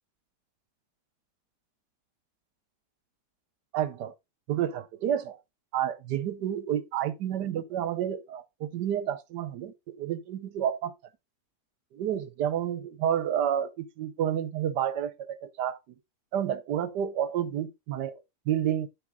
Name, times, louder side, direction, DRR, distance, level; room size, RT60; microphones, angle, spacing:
voice 1, 3.7-4.1 4.5-5.4 5.7-10.9 11.9-15.8 16.3-18.9, right 10 dB, 80° right, 1.4 m, -30 dB
10.0 x 5.4 x 3.6 m
omnidirectional pair, 1.8 m